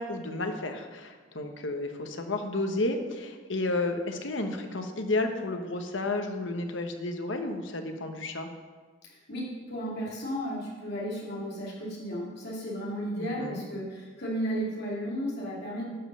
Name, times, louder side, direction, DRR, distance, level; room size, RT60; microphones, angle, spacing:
voice 1, 0.0-8.5 13.4-13.6, left 2 dB, 75° left, 5 dB, 1.2 m, -32 dB
voice 2, 9.0-15.9, equal, 60° left, -5 dB, 2.6 m, -34 dB
11.5 x 5.4 x 6.7 m, 1.4 s
head